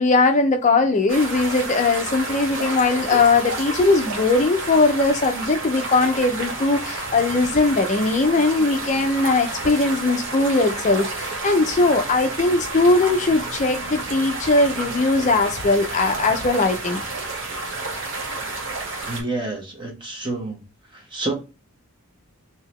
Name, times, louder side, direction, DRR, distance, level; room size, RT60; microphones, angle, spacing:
voice 1, 0.0-17.0, left 3 dB, 30° left, 0.4 m, -20 dB
sound 1, 1.1-19.2, right 2 dB, 60° right, 1.1 m, -30 dB
voice 2, 19.0-20.6 20.9-21.3, right 2 dB, 20° right, 1.1 m, -29 dB
3.8 x 2.8 x 3.0 m
head